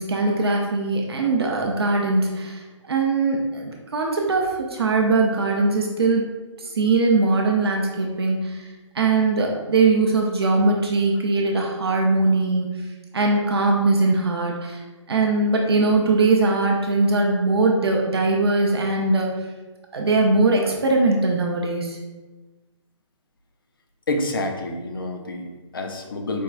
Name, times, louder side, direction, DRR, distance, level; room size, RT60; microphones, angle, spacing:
voice 1, 0.0-6.2 6.6-8.6 8.9-12.7 13.1-14.8 15.1-19.3 19.9-22.0, right 3 dB, 50° right, 0 dB, 0.4 m, -21 dB
voice 2, 24.1-26.4, left 2 dB, 45° left, 5 dB, 0.4 m, -28 dB
4.3 x 2.2 x 2.3 m, 1.2 s
hypercardioid pair, 170°, 16 cm